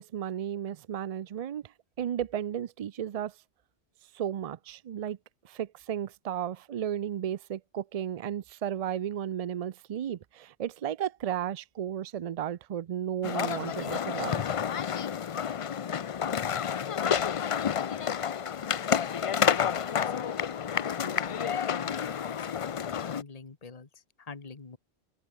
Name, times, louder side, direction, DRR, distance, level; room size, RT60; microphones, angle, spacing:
voice 1, 0.0-3.4 4.1-5.2 5.4-14.4, right 9 dB, 65° right, 0.3 m, -34 dB
sound 1, 13.2-23.2, left 8 dB, 55° left, 0.4 m, -30 dB
voice 2, 20.0-22.5 23.0-24.8, left 4 dB, 35° left, 1.5 m, -46 dB
omnidirectional pair, 1.1 m